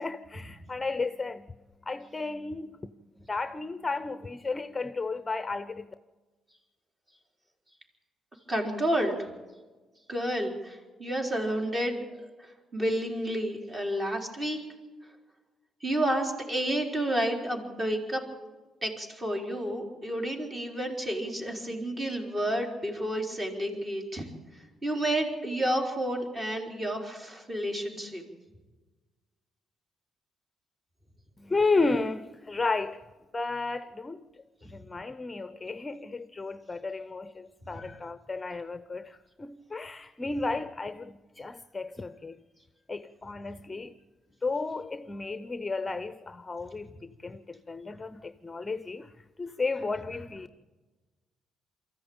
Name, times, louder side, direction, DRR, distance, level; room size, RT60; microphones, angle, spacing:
voice 1, 0.0-1.5 1.8-2.7 3.3-5.9 31.4-33.0 33.3-34.2 34.6-42.4 42.9-43.9 44.4-49.1 49.4-50.5, left 3 dB, 20° left, 0.7 m, -33 dB
voice 2, 8.5-9.2 10.1-12.3 12.7-14.6 15.8-18.2 18.8-24.3 24.8-28.2, right 1 dB, 25° right, 4.2 m, -30 dB
23.5 x 14.0 x 8.8 m
cardioid pair, 90°, 0 cm